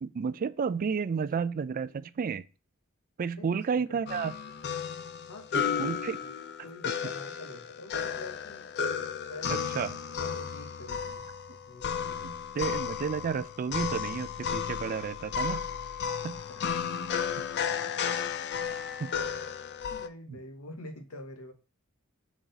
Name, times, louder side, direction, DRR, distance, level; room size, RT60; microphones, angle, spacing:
voice 1, 0.0-2.5 3.2-4.3 5.5-6.2 9.5-9.9 12.2-15.6 16.2-16.4 19.0-19.1, right 6 dB, 40° right, 0.3 m, -32 dB
voice 2, 3.4-4.0 5.3-6.3 6.6-8.7 9.2-9.9 10.2-11.3 11.7-12.3 16.4-16.6 19.9-21.5, left 2 dB, 85° left, 1.0 m, -46 dB
sound 1, 4.1-20.1, left 7 dB, 50° left, 0.4 m, -33 dB
6.1 x 3.9 x 4.0 m
head